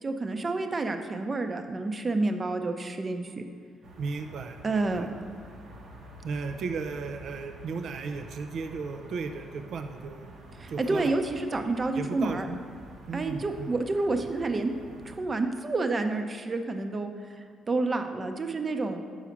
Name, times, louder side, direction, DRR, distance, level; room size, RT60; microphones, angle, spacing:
voice 1, 0.0-3.4 4.6-5.1 10.6-12.5 13.1-14.7 15.0-17.1 17.4-19.0, right 3 dB, 35° right, 6 dB, 0.7 m, -29 dB
sound 1, 3.8-15.2, right 1 dB, 80° right, 1.4 m, -48 dB
voice 2, 4.0-5.1 6.2-10.3 10.7-11.1 12.0-12.6 13.1-13.7, right 4 dB, 65° right, 6 dB, 0.5 m, -35 dB
7.2 x 4.8 x 5.9 m, 2.1 s
cardioid pair, 90°, 0 cm